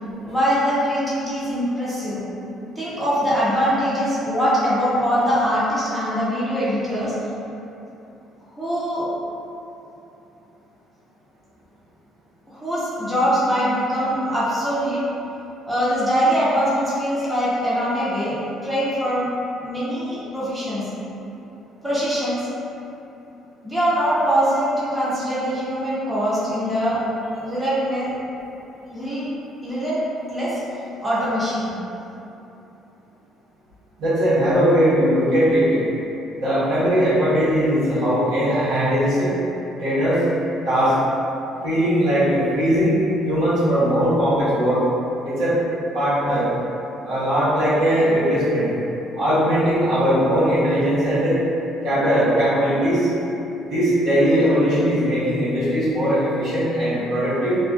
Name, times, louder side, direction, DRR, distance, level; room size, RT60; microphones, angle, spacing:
voice 1, 0.3-2.2 2.8-7.1 8.6-9.1 12.5-15.0 15.7-19.3 19.6-20.9 21.8-22.5 23.6-28.1 28.9-29.2 29.6-30.0 30.3-30.6 31.0-31.7, equal, 10° right, -10 dB, 0.9 m, -22 dB
voice 2, 34.0-35.8 36.3-39.3 39.8-40.2 40.6-41.0 41.6-43.0 43.2-44.8 45.2-45.6 45.9-46.5 47.0-48.7 49.2-51.4 51.8-53.1 53.7-57.6, equal, 75° right, -12 dB, 1.1 m, -19 dB
2.4 x 2.1 x 2.5 m, 2.9 s
hypercardioid pair, 60°, 0 cm